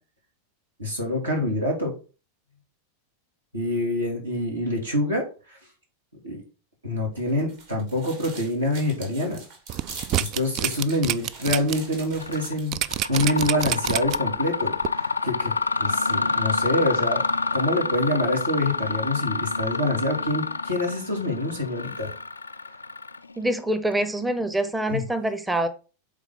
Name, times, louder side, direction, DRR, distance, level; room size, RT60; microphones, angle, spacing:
voice 1, 0.8-1.9 3.5-5.6 6.2-6.4 6.8-9.4 10.2-12.8 13.1-14.7 15.2-15.5 15.8-17.2 17.5-22.1 24.9-25.0, left 1 dB, 80° right, -1 dB, 2.6 m, -26 dB
sound 1, 7.2-12.8, right 4 dB, 55° right, 2.3 m, -42 dB
sound 2, 9.7-11.7 12.1-12.2 12.7-14.4 14.8-14.9, right 13 dB, 40° right, 0.3 m, -27 dB
Mechanisms, 12.2-12.5 12.9-23.5, left 4 dB, 80° left, 0.3 m, -28 dB
voice 2, 23.4-25.7, right 1 dB, 5° right, 11 dB, 0.8 m, -25 dB
8.3 x 3.8 x 3.8 m, 0.34 s
figure-of-eight pair, 90°, 0 cm